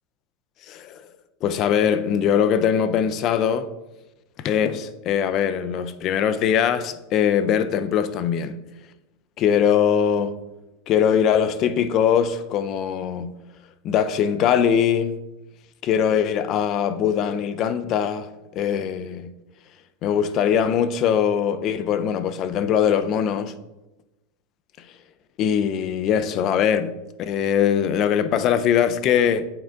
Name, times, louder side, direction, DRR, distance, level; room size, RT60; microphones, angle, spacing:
voice 1, 0.7-1.1 1.4-3.7 4.4-8.6 9.4-10.3 10.9-13.3 13.8-15.2 15.8-19.3 20.0-23.5 25.4-26.9 27.2-29.5, left 8 dB, 35° left, 0.4 m, -21 dB
8.6 x 3.8 x 3.5 m
supercardioid pair, 160°, 0 cm